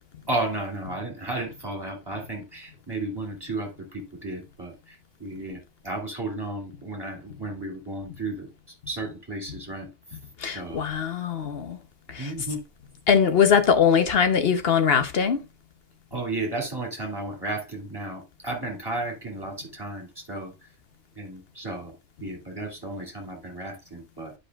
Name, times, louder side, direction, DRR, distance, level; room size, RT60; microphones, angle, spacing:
voice 1, 0.3-10.2 10.5-10.8 12.2-12.6 16.1-20.5 21.2-22.0 22.2-24.3, right 2 dB, 20° right, 2.5 m, -33 dB
voice 2, 10.4-11.8 12.1-12.3 13.1-15.4, left 7 dB, 55° left, 1.0 m, -21 dB
12.0 x 5.1 x 2.3 m
omnidirectional pair, 1.2 m